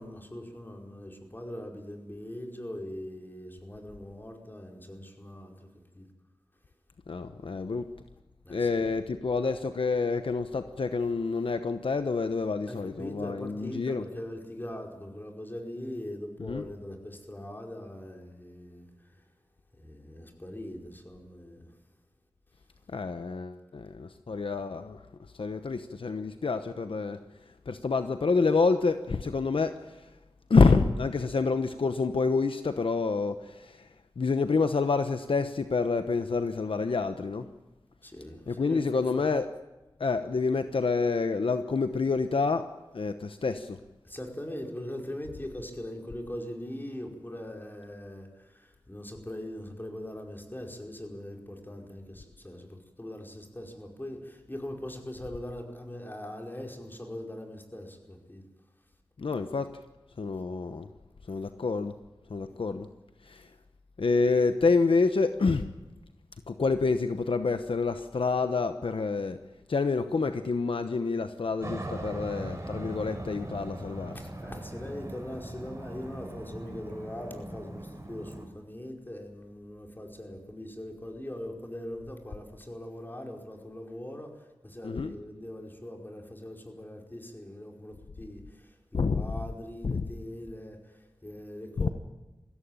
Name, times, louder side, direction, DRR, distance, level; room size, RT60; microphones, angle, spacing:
voice 1, 0.0-5.7 5.9-6.1 8.4-8.7 12.7-19.2 19.8-21.8 38.0-39.3 44.0-58.4 61.4-61.5 62.5-62.6 74.1-91.9, left 1 dB, 20° left, 5.0 m, -41 dB
voice 2, 7.1-8.0 8.5-14.1 16.4-16.7 22.9-25.0 25.4-27.2 27.7-30.0 30.5-33.9 34.2-37.5 38.5-39.6 40.0-43.8 59.2-59.8 60.2-60.9 61.3-61.9 62.3-62.9 63.3-63.5 64.0-65.7 66.5-69.4 69.7-74.2 84.8-85.2 88.9-89.4 89.8-90.1 91.8-91.9, left 4 dB, 75° left, 1.0 m, -28 dB
Aircraft, 71.6-78.5, right 1 dB, 30° right, 4.5 m, -40 dB
22.0 x 16.0 x 9.0 m
wide cardioid pair, 55°, 9 cm